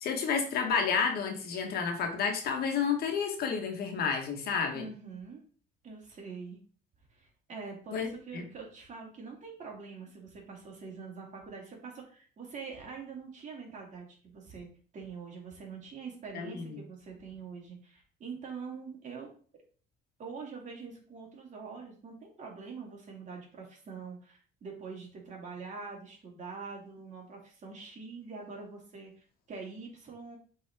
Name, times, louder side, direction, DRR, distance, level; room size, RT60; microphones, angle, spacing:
voice 1, 0.0-4.9 7.9-8.1 8.3-8.4 16.3-16.8, left 6 dB, 65° left, 4 dB, 1.5 m, -30 dB
voice 2, 4.7-5.4 5.8-6.6 7.1-14.7 14.9-19.3 20.2-30.4, right 5 dB, 45° right, -1 dB, 2.8 m, -44 dB
7.5 x 4.1 x 3.7 m, 0.42 s
cardioid pair, 110°, 17 cm